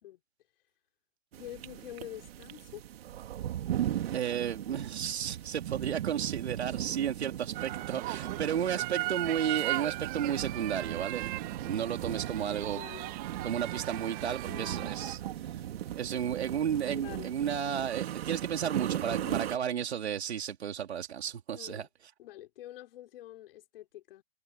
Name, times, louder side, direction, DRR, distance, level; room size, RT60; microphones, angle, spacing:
sound 1, 1.3-19.6, right 12 dB, 70° right, 2.8 m, -38 dB
voice 1, 1.4-2.8 12.7-13.1 14.4-15.0 16.8-17.4 19.0-19.5 21.5-21.9 22.2-24.2, left 14 dB, 60° left, 4.1 m, -46 dB
voice 2, 4.1-11.3 11.6-12.8 13.4-15.2 15.9-21.9, right 9 dB, 85° right, 2.8 m, -33 dB
sound 2, 7.5-15.2, right 20 dB, 25° right, 0.8 m, -37 dB
hypercardioid pair, 140°, 32 cm